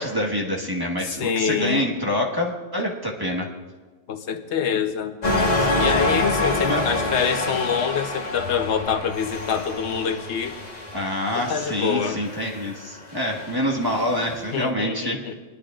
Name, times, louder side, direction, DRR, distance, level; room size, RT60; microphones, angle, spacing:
voice 1, 0.0-3.5 6.6-6.8 10.9-15.3, equal, 20° right, -1 dB, 1.4 m, -26 dB
voice 2, 1.2-1.9 4.1-5.1 5.8-10.6 11.4-12.2 14.5-15.3, left 7 dB, 85° left, 7 dB, 1.2 m, -25 dB
sound 1, 5.2-14.5, left 2 dB, 40° left, 1.4 m, -27 dB
22.5 x 10.5 x 2.5 m, 1.3 s
omnidirectional pair, 1.1 m